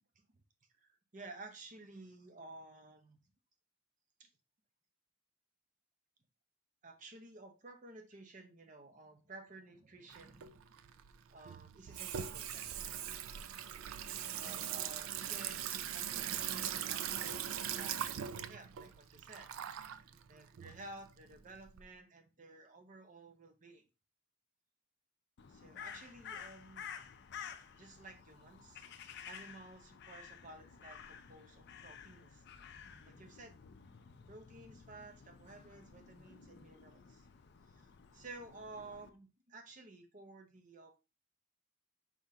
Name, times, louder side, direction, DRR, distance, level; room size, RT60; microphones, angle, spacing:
voice 1, 0.8-3.2 4.2-4.3 6.8-10.6 10.8-10.9 11.3-12.9 14.2-23.8 25.5-26.9 27.7-33.5 34.3-37.3 37.7-37.9 38.1-41.1, right 2 dB, 40° right, 6 dB, 0.7 m, -54 dB
Water tap faucet / Sink (filling or washing), 10.1-21.8, right 9 dB, 80° right, 0.4 m, -41 dB
Crow, 25.4-39.1, left 7 dB, 55° left, 0.4 m, -52 dB
4.8 x 3.6 x 2.7 m, 0.29 s
head